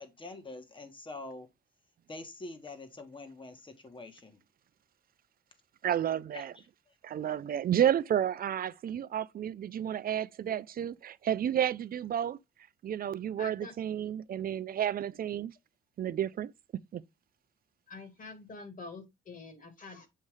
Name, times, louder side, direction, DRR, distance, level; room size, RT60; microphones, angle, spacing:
voice 1, 0.0-1.5 2.1-4.4 6.3-6.7, left 2 dB, 25° left, 1.4 m, -45 dB
voice 2, 5.8-6.5 7.0-12.4 12.8-15.5 16.0-16.5 16.9-17.0, right 10 dB, 45° right, 0.5 m, -31 dB
voice 3, 13.4-13.7 17.9-20.1, left 4 dB, 45° left, 2.1 m, -46 dB
7.5 x 2.8 x 4.8 m
cardioid pair, 90°, 20 cm